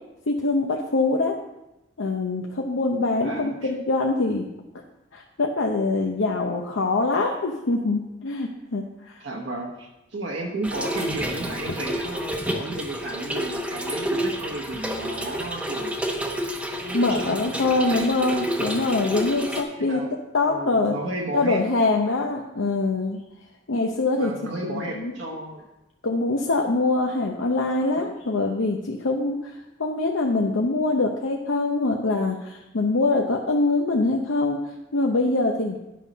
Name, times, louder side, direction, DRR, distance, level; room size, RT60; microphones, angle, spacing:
voice 1, 0.3-1.4 2.0-4.5 5.1-9.2 16.9-20.0 20.3-20.9 21.3-23.2 23.7-25.1 26.0-35.8, left 3 dB, 85° left, 1 dB, 0.7 m, -24 dB
voice 2, 3.2-3.7 9.2-16.0 16.8-18.1 19.8-20.1 20.5-21.6 24.2-25.6, right 2 dB, 65° right, -1 dB, 1.1 m, -33 dB
Trickle dribble / Fill (with liquid), 10.6-19.6, equal, 5° right, 0.7 m, -30 dB
10.5 x 5.5 x 5.2 m, 0.95 s
head